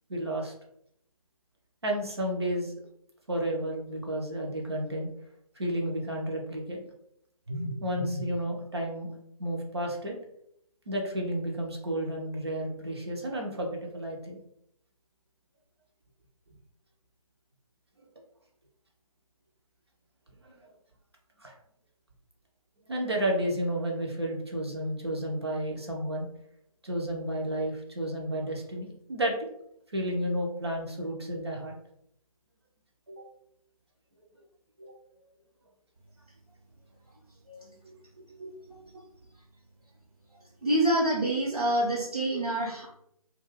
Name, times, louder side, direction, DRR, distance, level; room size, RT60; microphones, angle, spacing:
voice 1, 0.1-0.5 1.8-2.7 3.3-5.1 5.6-6.8 7.5-9.1 9.4-10.1 10.9-14.4 20.4-20.6 21.4-21.5 22.9-26.3 26.8-29.3 29.9-31.8 33.1-33.2 34.8-34.9 37.9-38.0 38.4-38.5 38.9-39.0, right 1 dB, 45° right, 0 dB, 0.5 m, -32 dB
voice 2, 40.6-42.9, right 1 dB, 75° right, -6 dB, 0.9 m, -27 dB
2.2 x 2.2 x 3.2 m, 0.74 s
figure-of-eight pair, 155°, 19 cm